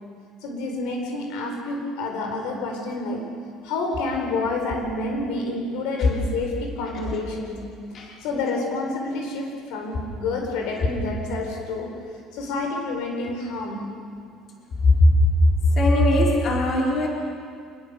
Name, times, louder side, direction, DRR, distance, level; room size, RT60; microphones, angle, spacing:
voice 1, 0.4-3.3 3.6-7.7 8.0-11.9 12.3-13.9, left 3 dB, 80° left, 2 dB, 4.4 m, -29 dB
voice 2, 15.8-17.1, left 1 dB, 40° left, -2 dB, 4.3 m, -18 dB
25.0 x 20.5 x 6.9 m, 2.2 s
cardioid pair, 155°, 0 cm